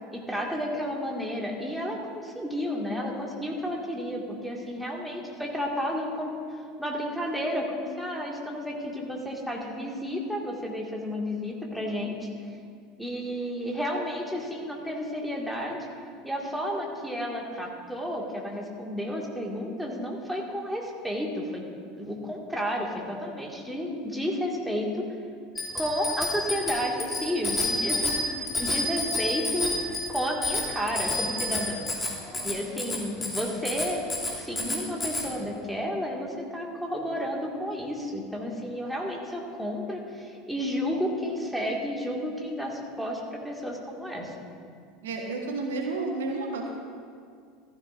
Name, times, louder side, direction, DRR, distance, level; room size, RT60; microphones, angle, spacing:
voice 1, 0.1-12.3 13.0-15.9 16.2-21.6 22.0-25.1 25.7-29.7 30.1-31.8 32.4-34.0 34.3-44.4, equal, ahead, -2 dB, 2.0 m, -32 dB
Bicycle bell, 25.6-35.3, left 2 dB, 15° left, 2.7 m, -30 dB
voice 2, 45.0-46.7, right 3 dB, 70° right, 2 dB, 1.2 m, -31 dB
14.5 x 12.5 x 2.6 m, 2.2 s
figure-of-eight pair, 75°, 0 cm